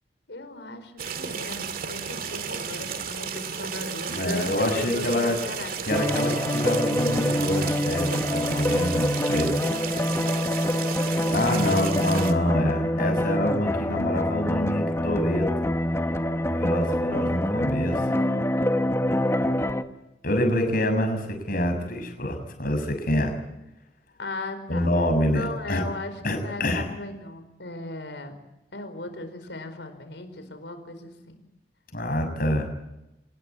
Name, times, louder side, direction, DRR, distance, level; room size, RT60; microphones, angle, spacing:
voice 1, 0.3-5.9 11.5-11.9 24.2-24.9 25.3-28.3 28.7-31.4, left 2 dB, 90° left, 8 dB, 4.9 m, -37 dB
sound 1, 1.0-12.3, right 6 dB, 55° right, 2.2 m, -33 dB
voice 2, 4.1-5.4 5.9-9.5 11.3-15.5 16.5-18.0 20.2-23.3 24.7-25.8 26.2-26.8 31.9-32.7, left 1 dB, 55° left, 5 dB, 6.8 m, -26 dB
sound 2, 5.9-19.8, left 1 dB, 15° left, 1.2 m, -25 dB
25.0 x 20.5 x 8.7 m, 0.93 s
head